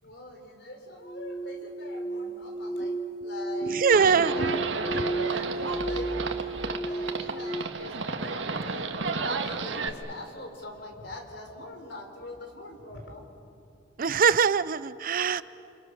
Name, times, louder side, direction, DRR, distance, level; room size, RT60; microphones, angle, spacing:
voice 1, 0.0-3.0 3.2-8.9 9.2-13.2, left 2 dB, 65° left, 4 dB, 4.1 m, -43 dB
sound 1, 1.0-7.6, right 2 dB, 25° left, 2.2 m, -33 dB
voice 2, 3.7-4.6 14.0-15.4, right 6 dB, 50° right, 16 dB, 0.5 m, -23 dB
Livestock farm animals working animals, 3.9-9.9, right 4 dB, 90° right, 1.6 m, -32 dB
29.5 x 26.5 x 6.5 m, 2.6 s
head